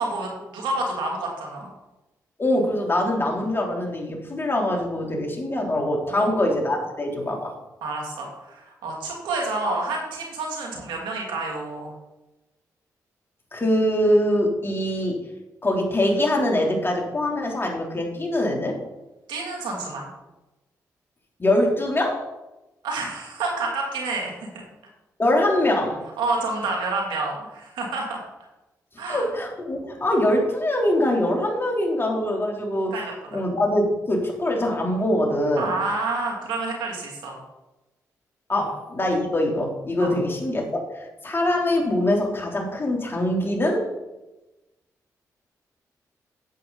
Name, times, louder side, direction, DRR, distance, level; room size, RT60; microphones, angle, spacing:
voice 1, 0.0-1.7 6.1-6.4 7.8-11.9 19.3-20.1 22.8-24.6 26.2-28.2 29.0-29.3 32.9-33.1 35.6-37.4 40.0-40.1, right 3 dB, 85° right, 0 dB, 2.7 m, -29 dB
voice 2, 2.4-7.5 13.5-15.2 15.6-18.8 21.4-22.2 25.2-26.0 29.1-33.0 33.3-35.7 38.5-43.9, left 1 dB, 30° left, 0 dB, 3.4 m, -23 dB
10.5 x 8.1 x 4.1 m, 1.0 s
supercardioid pair, 50°, 8 cm